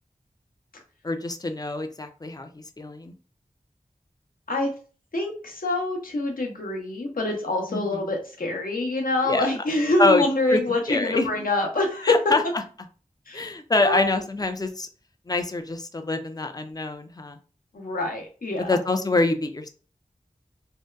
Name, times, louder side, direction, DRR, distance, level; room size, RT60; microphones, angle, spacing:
voice 1, 1.0-3.1 7.7-8.0 9.2-9.5 10.0-10.6 10.9-11.3 12.0-12.4 13.3-14.9 15.3-17.4 18.7-19.7, left 2 dB, 25° left, 7 dB, 0.4 m, -25 dB
voice 2, 5.1-12.1 13.3-13.5 13.8-14.2 17.7-18.8, left 2 dB, 75° left, 1 dB, 0.7 m, -26 dB
2.7 x 2.2 x 2.2 m, 0.38 s
wide cardioid pair, 60°, 15 cm